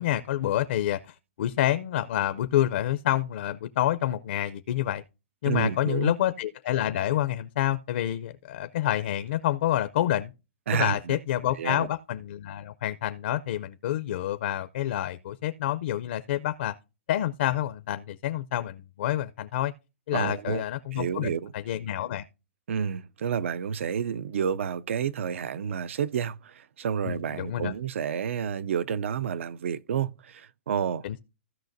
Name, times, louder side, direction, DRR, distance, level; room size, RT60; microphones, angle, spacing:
voice 1, 0.0-5.0 5.4-10.3 10.7-16.7 17.1-19.7 20.1-22.2 27.0-27.7 31.0-31.2, left 12 dB, 55° left, 0.5 m, -28 dB
voice 2, 5.5-6.1 10.7-11.2 11.6-11.9 20.1-20.6 20.9-21.5 22.7-31.2, right 7 dB, 75° right, 0.4 m, -30 dB
15.5 x 5.7 x 2.6 m
hypercardioid pair, 160°, 7 cm